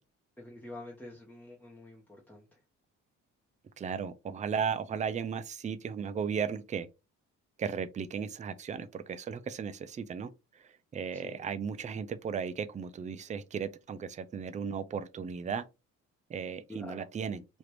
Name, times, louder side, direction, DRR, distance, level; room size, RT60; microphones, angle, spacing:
voice 1, 0.4-2.6 11.1-11.4 16.7-17.1, left 2 dB, 5° left, 0.9 m, -47 dB
voice 2, 3.8-6.9 7.6-10.3 10.6-15.6 16.3-17.4, right 6 dB, 25° right, 0.4 m, -35 dB
3.0 x 2.4 x 3.3 m
cardioid pair, 90°, 30 cm